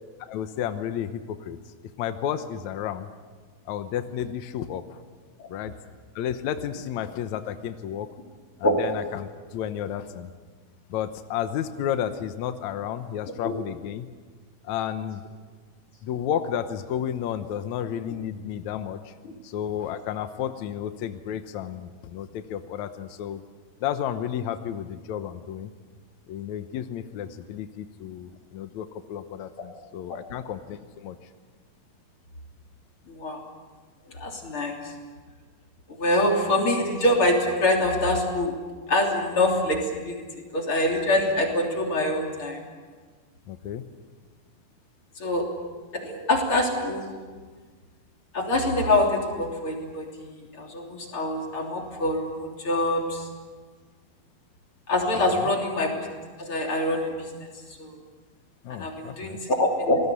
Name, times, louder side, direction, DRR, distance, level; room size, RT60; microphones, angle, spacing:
voice 1, 0.3-1.6 2.0-3.1 3.7-4.8 5.5-5.7 6.2-8.1 8.6-10.3 10.9-14.1 14.7-15.2 16.0-19.1 19.4-23.4 23.8-25.7 26.3-31.2 43.5-43.8 58.6-59.4, left 9 dB, 75° left, 9 dB, 1.7 m, -32 dB
voice 2, 33.1-33.4 34.1-34.8 36.0-38.6 38.9-40.2 40.5-42.6 45.2-45.5 45.9-47.1 48.3-53.3 54.9-56.1 56.4-57.1 57.4-57.5 57.8-58.0 58.7-60.0, left 1 dB, 35° left, 1 dB, 3.7 m, -25 dB
27.5 x 19.5 x 8.3 m, 1.5 s
omnidirectional pair, 4.5 m